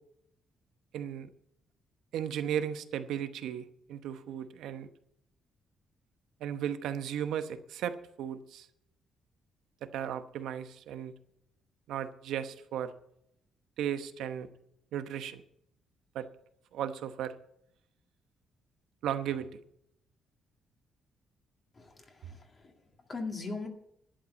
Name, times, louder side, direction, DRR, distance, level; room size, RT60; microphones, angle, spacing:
voice 1, 0.9-1.3 2.1-4.9 6.4-8.7 9.8-11.1 11.9-12.9 13.8-14.5 14.9-15.4 16.1-16.3 16.7-17.4 19.0-19.6, right 9 dB, 90° right, 10 dB, 0.9 m, -35 dB
voice 2, 21.7-23.7, left 3 dB, 30° left, 3 dB, 2.0 m, -41 dB
11.5 x 7.7 x 8.4 m, 0.75 s
cardioid pair, 155°, 0 cm